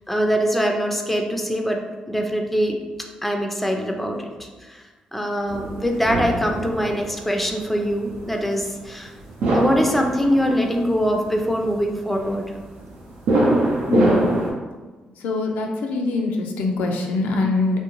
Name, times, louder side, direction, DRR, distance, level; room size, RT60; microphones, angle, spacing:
voice 1, 0.1-1.8 2.1-2.8 3.2-9.1 9.5-12.5, equal, 5° left, 3 dB, 0.4 m, -23 dB
sound 1, 5.5-14.5, right 1 dB, 85° right, 0.5 m, -24 dB
voice 2, 13.9-14.2 15.2-17.8, left 3 dB, 90° left, 1 dB, 0.3 m, -23 dB
2.5 x 2.1 x 3.0 m, 1.3 s
cardioid pair, 70°, 3 cm